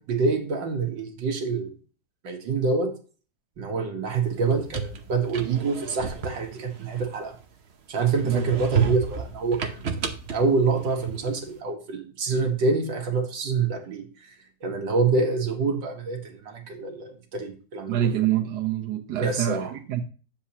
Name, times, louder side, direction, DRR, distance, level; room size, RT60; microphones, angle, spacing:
voice 1, 0.0-1.7 2.2-2.9 3.6-7.4 7.9-9.8 10.3-14.1 14.6-18.0 19.2-19.7, right 4 dB, 85° right, 2.1 m, -26 dB
sound 1, 4.3-7.6 8.1-11.5, right 6 dB, 50° right, 0.9 m, -32 dB
voice 2, 17.9-20.0, right 11 dB, 70° right, 1.5 m, -26 dB
9.1 x 7.4 x 2.9 m
omnidirectional pair, 1.9 m